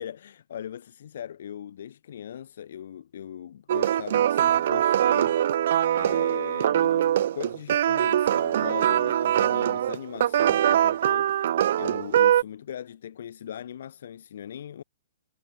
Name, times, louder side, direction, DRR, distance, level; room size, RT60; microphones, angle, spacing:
voice 1, 0.0-5.4 6.0-14.8, left 9 dB, 55° left, 2.7 m, -39 dB
sound 1, 3.7-12.4, right 11 dB, 55° right, 0.7 m, -23 dB
figure-of-eight pair, 115°, 0 cm